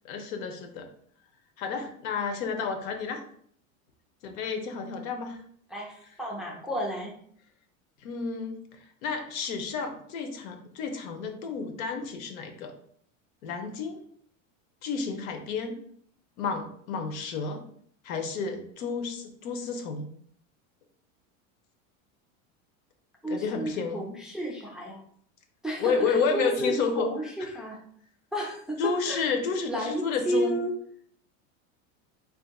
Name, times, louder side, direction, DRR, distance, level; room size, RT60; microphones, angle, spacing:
voice 1, 0.0-0.9 1.6-3.2 4.2-5.4 8.0-8.6 9.0-12.7 13.4-14.0 14.8-15.8 16.4-17.6 18.0-20.1 23.3-24.0 25.8-27.1 28.8-30.6, left 5 dB, 85° left, 6 dB, 0.7 m, -31 dB
voice 2, 5.7-7.1 23.2-25.0 25.6-27.8 28.3-29.3 29.7-30.7, right 1 dB, ahead, -2 dB, 0.4 m, -32 dB
3.4 x 2.7 x 2.3 m, 0.62 s
supercardioid pair, 125°, 41 cm